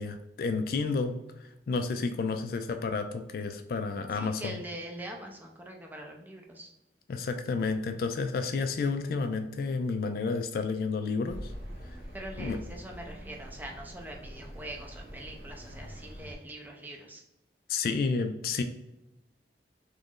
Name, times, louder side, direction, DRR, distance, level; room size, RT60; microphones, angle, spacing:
voice 1, 0.0-4.5 7.1-11.5 12.4-12.6 17.7-18.6, left 4 dB, 55° left, 7 dB, 0.3 m, -31 dB
voice 2, 4.1-6.7 12.1-17.2, right 1 dB, 10° right, 1 dB, 0.5 m, -43 dB
Accelerating revving vroom, 11.3-16.4, equal, 65° right, 1.0 m, -44 dB
3.0 x 2.5 x 3.6 m, 0.94 s
head